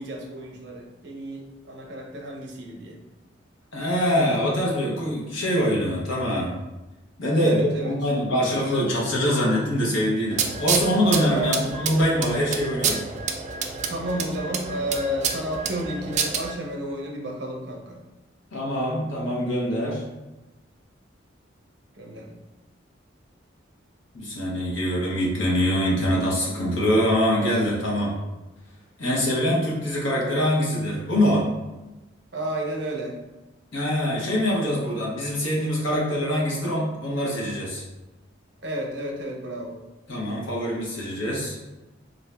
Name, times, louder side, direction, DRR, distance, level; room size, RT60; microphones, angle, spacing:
voice 1, 0.0-3.0 7.4-7.9 11.3-11.6 13.9-18.0 22.0-22.3 32.3-33.2 38.6-39.8, right 1 dB, 60° right, 1 dB, 0.7 m, -31 dB
voice 2, 3.7-6.6 7.2-13.1 18.5-20.0 24.1-28.1 29.0-31.5 33.7-37.8 40.1-41.6, equal, 85° left, -4 dB, 1.2 m, -24 dB
sound 1, 10.3-16.5, right 6 dB, 35° right, 0.3 m, -29 dB
4.0 x 2.6 x 3.3 m, 1.1 s
head